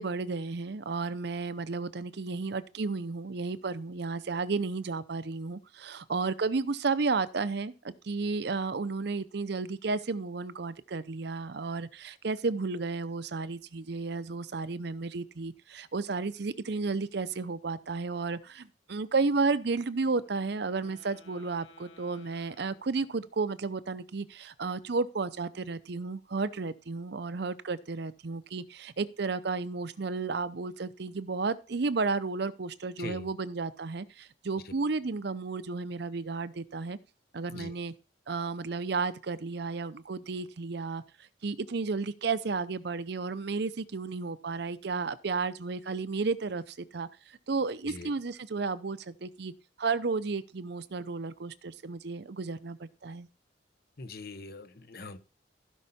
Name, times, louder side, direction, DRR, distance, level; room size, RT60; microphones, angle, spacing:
voice 1, 0.0-37.0 37.3-37.9 38.3-41.0 41.4-47.1 47.5-49.5 49.8-53.3, right 4 dB, 60° right, 0.6 m, -32 dB
Wind instrument woodwind instrument, 19.9-23.5, left 3 dB, 90° left, 2.5 m, -58 dB
voice 2, 33.0-33.3 37.5-37.8 47.8-48.1 54.0-55.2, left 3 dB, 55° left, 1.0 m, -42 dB
15.5 x 5.5 x 4.2 m
head